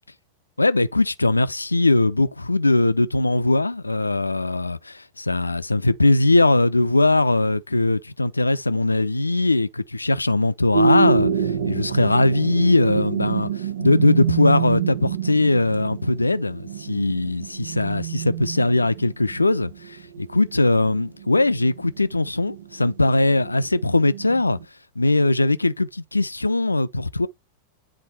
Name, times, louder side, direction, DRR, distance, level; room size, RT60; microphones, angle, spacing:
voice 1, 0.6-24.6 25.0-27.3, left 2 dB, 80° left, 0.6 m, -20 dB
sound 1, 10.7-24.6, right 6 dB, 65° right, 1.0 m, -27 dB
10.0 x 4.0 x 4.1 m
figure-of-eight pair, 90°, 0 cm